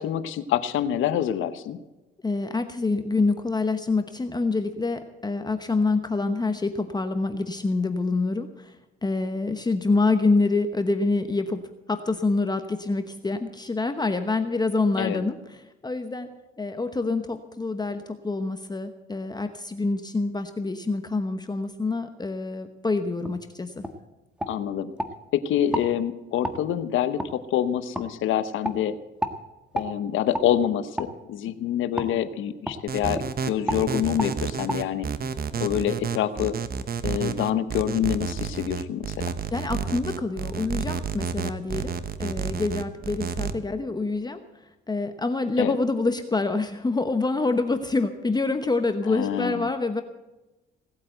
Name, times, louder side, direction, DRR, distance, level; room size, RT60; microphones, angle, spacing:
voice 1, 0.0-1.8 15.0-15.2 24.5-24.9 25.3-29.0 29.7-35.1 35.6-36.5 37.0-39.3 45.6-45.7 49.1-49.7, left 10 dB, 85° left, 12 dB, 1.0 m, -26 dB
voice 2, 2.2-8.7 9.0-11.6 11.9-16.3 16.6-23.8 39.5-41.9 42.2-44.4 44.9-50.0, left 3 dB, 20° left, 8 dB, 1.0 m, -26 dB
sound 1, 23.2-23.4 23.8-24.0 24.4-25.1 25.7-25.9 26.4-26.6 27.2-27.3 27.9-28.1 28.6-28.8 29.2-29.4 29.7-29.9 30.3-30.5 31.0-31.1 32.0-32.1 32.7-32.8 33.1-33.3 33.7-33.8 34.2-34.3 34.7-34.8, equal, 5° right, 1.5 m, -30 dB
sound 2, 32.9-43.5, right 6 dB, 50° right, 1.1 m, -30 dB
18.0 x 8.4 x 7.9 m, 1.1 s
cardioid pair, 90°, 20 cm